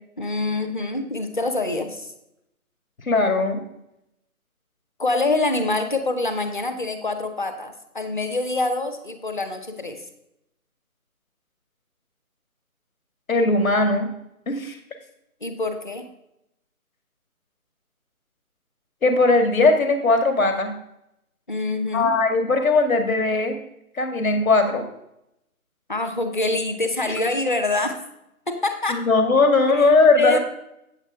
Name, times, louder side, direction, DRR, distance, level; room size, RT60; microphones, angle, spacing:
voice 1, 0.2-2.1 5.0-10.0 15.4-16.1 21.5-22.1 25.9-28.0 28.5-29.0 29.7-29.9 30.2-30.4, left 2 dB, 35° left, 7 dB, 0.8 m, -25 dB
voice 2, 3.0-3.6 13.3-14.1 14.5-14.8 19.0-20.7 21.9-23.6 24.0-24.8 27.1-27.2 28.9-30.4, left 3 dB, 65° left, 6 dB, 1.8 m, -19 dB
8.4 x 7.9 x 3.5 m, 0.83 s
figure-of-eight pair, 170°, 44 cm